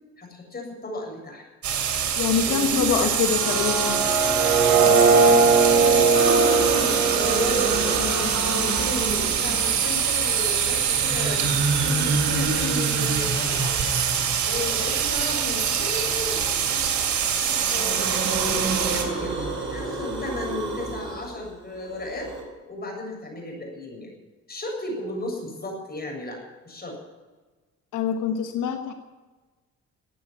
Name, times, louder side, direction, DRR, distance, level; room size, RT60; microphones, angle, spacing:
voice 1, 0.2-1.4 2.4-3.2 5.8-8.1 8.5-11.4 11.8-13.7 14.4-17.1 17.4-18.6 18.9-19.4 19.7-22.3 22.7-24.1 24.5-27.0, left 2 dB, 30° left, 1 dB, 7.3 m, -34 dB
sound 1, 1.6-19.0, right 8 dB, 70° right, 3.2 m, -25 dB
voice 2, 2.2-4.0 27.9-28.9, left 8 dB, 90° left, 6 dB, 1.3 m, -25 dB
sound 2, 3.2-9.1, right 4 dB, 85° right, 4.8 m, -21 dB
sound 3, 6.1-10.1 10.8-14.6 15.9-17.1 17.4-22.4, right 3 dB, 40° right, 6.8 m, -29 dB
15.5 x 9.2 x 10.0 m, 1.3 s
cardioid pair, 90°, 30 cm